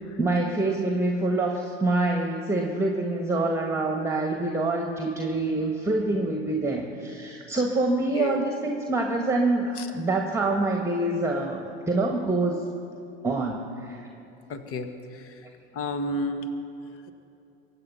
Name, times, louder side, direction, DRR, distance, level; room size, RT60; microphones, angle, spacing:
voice 1, 0.2-12.6 13.2-14.1, right 2 dB, 10° right, 2 dB, 1.6 m, -26 dB
voice 2, 14.5-14.9 15.7-16.5, left 2 dB, 45° left, 9 dB, 1.5 m, -30 dB
23.0 x 8.8 x 5.6 m, 2.7 s
hypercardioid pair, 70°, 31 cm